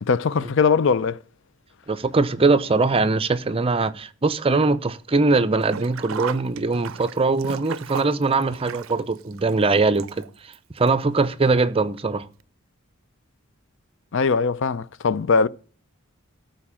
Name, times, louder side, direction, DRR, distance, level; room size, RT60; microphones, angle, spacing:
voice 1, 0.0-1.2 14.1-15.5, left 5 dB, 65° left, 0.5 m, -20 dB
voice 2, 1.9-10.2 10.8-12.3, right 3 dB, 30° right, 0.6 m, -21 dB
Sink (filling or washing), 5.6-10.6 10.9-11.0 12.0-12.1 12.4-12.5, right 7 dB, 75° right, 0.4 m, -35 dB
13.5 x 4.5 x 7.3 m
head